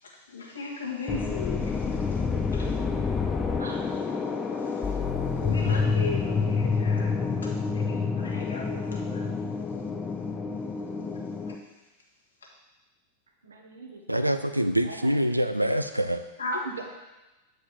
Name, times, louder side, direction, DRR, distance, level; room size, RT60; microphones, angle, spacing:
voice 1, 0.0-2.8 3.7-3.8 4.6-5.0 5.4-9.3 11.5-11.6 16.4-16.6, left 3 dB, 70° left, -2 dB, 1.7 m, -37 dB
sound 1, 1.1-11.5, left 5 dB, 15° left, 0.7 m, -28 dB
voice 2, 13.4-14.3 14.8-15.2 16.5-16.8, right 3 dB, 70° right, 2 dB, 1.2 m, -41 dB
voice 3, 14.1-16.2, right 1 dB, 90° right, 9 dB, 0.4 m, -25 dB
8.5 x 4.9 x 4.4 m, 1.0 s
figure-of-eight pair, 90°, 0 cm